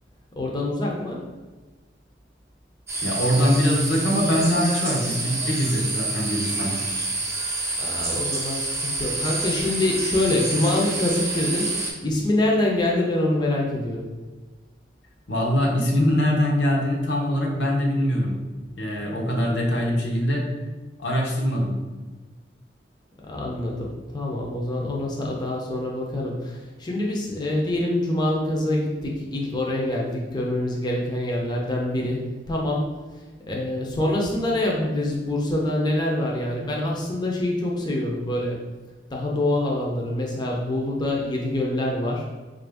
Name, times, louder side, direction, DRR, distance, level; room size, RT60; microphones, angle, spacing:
voice 1, 0.3-1.2 7.8-14.1 23.2-38.7 39.1-42.3, left 1 dB, 25° left, -2 dB, 0.5 m, -25 dB
sound 1, 2.9-11.9, right 2 dB, 15° right, 0.6 m, -28 dB
voice 2, 3.0-6.8 15.3-18.4 18.8-20.5 21.0-21.7, equal, 80° left, -1 dB, 0.8 m, -23 dB
3.8 x 2.5 x 3.4 m, 1.3 s
head